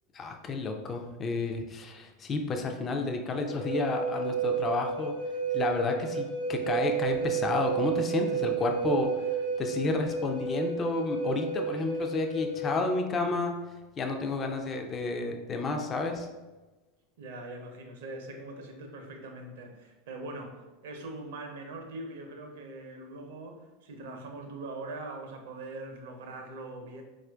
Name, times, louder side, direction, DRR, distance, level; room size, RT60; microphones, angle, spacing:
voice 1, 0.1-5.2 5.5-13.6 14.0-16.3, left 3 dB, 30° left, 4 dB, 0.3 m, -31 dB
Wind instrument woodwind instrument, 3.4-12.7, right 6 dB, 90° left, 0.8 m, -31 dB
voice 2, 17.2-27.0, right 2 dB, 70° right, 3 dB, 0.5 m, -42 dB
4.2 x 2.4 x 2.2 m, 1.2 s
hypercardioid pair, 85°, 0 cm